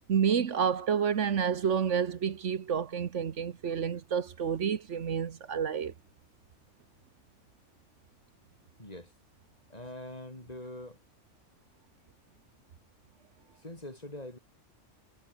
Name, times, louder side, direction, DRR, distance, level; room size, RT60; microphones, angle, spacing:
voice 1, 0.1-5.9, right 7 dB, 70° right, 1.4 m, -29 dB
voice 2, 8.8-9.1 9.7-11.0 13.5-14.4, left 1 dB, 30° left, 4.6 m, -43 dB
omnidirectional pair, 1.3 m